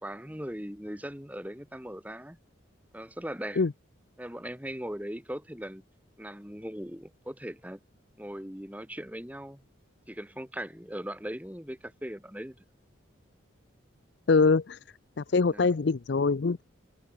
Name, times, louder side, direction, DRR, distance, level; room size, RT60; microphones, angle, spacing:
voice 1, 0.0-2.4 2.9-3.6 4.2-5.8 6.2-7.8 8.2-9.6 10.1-12.6 15.5-15.7, equal, 10° right, 2.2 m, -39 dB
voice 2, 14.3-14.8 15.2-16.6, left 4 dB, 55° left, 0.5 m, -23 dB
head